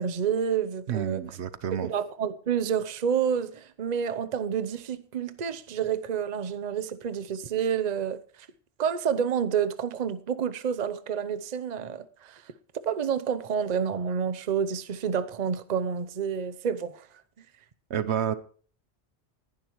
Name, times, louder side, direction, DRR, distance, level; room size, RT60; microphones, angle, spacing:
voice 1, 0.0-1.2 1.8-8.2 8.8-17.1, right 7 dB, 40° right, 0.8 m, -29 dB
voice 2, 0.9-1.9 17.9-18.3, right 9 dB, 75° right, 1.1 m, -29 dB
20.0 x 11.0 x 3.1 m
omnidirectional pair, 1.2 m